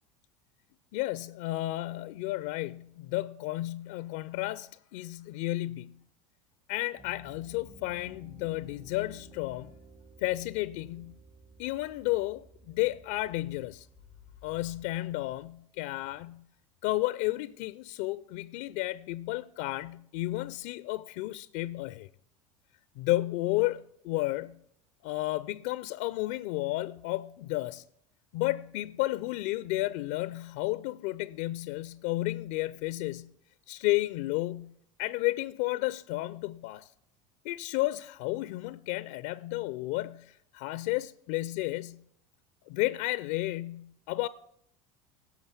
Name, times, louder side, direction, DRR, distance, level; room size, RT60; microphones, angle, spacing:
voice 1, 0.9-6.0 6.7-9.8 10.2-11.2 11.6-13.9 14.4-16.4 16.8-22.1 23.0-24.6 25.0-27.8 28.3-33.3 33.7-36.9 37.4-42.0 42.7-44.3, left 18 dB, 65° left, 0.4 m, -32 dB
Piano, 7.0-14.5, right 3 dB, 15° right, 0.7 m, -55 dB
16.0 x 6.2 x 5.9 m
hypercardioid pair, 80°, 17 cm